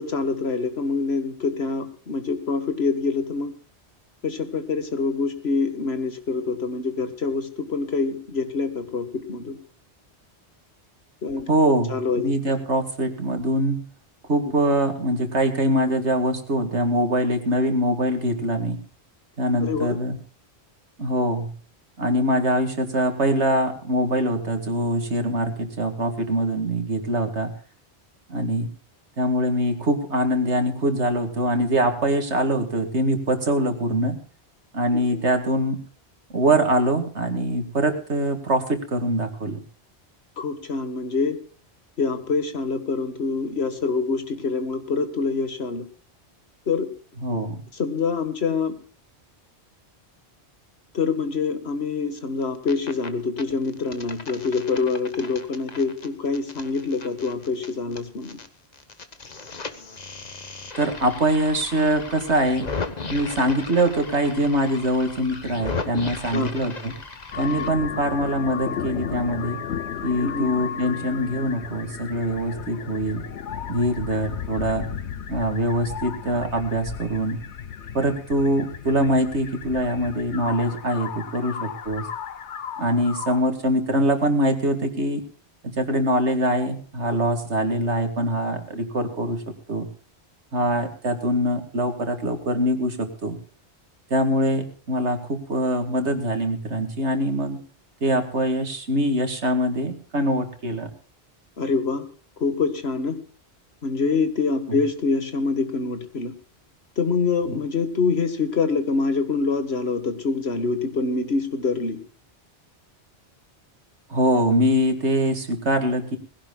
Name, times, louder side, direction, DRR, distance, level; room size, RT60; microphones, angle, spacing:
voice 1, 0.0-3.5 4.2-9.6 11.2-11.5 11.9-12.2 19.6-20.0 34.9-35.2 40.4-41.4 42.0-45.9 46.7-46.9 47.8-48.7 50.9-58.4 66.3-66.5 67.6-67.7 70.2-70.5 101.6-102.1 102.4-103.2 103.8-106.3 107.0-112.0, left 4 dB, 65° left, 9 dB, 1.9 m, -25 dB
voice 2, 11.5-11.9 12.2-13.8 14.3-18.8 19.4-20.2 21.0-21.5 22.0-27.5 28.3-28.7 29.2-34.2 34.7-35.8 36.3-39.6 47.2-47.6 60.8-62.7 63.1-66.9 67.3-69.6 70.0-73.2 73.7-74.8 75.3-77.4 77.9-82.1 82.8-85.2 85.6-89.4 89.7-89.9 90.5-93.4 94.1-97.6 98.0-100.9 104.7-104.8 107.5-107.6 114.1-116.2, equal, 80° right, 6 dB, 2.4 m, -23 dB
sound 1, 52.4-53.1 53.4-58.5 58.7-67.7, left 4 dB, 40° left, 1.3 m, -36 dB
sound 2, 67.3-83.4, left 8 dB, 85° left, 1.2 m, -34 dB
21.0 x 16.5 x 2.4 m, 0.41 s
omnidirectional pair, 1.1 m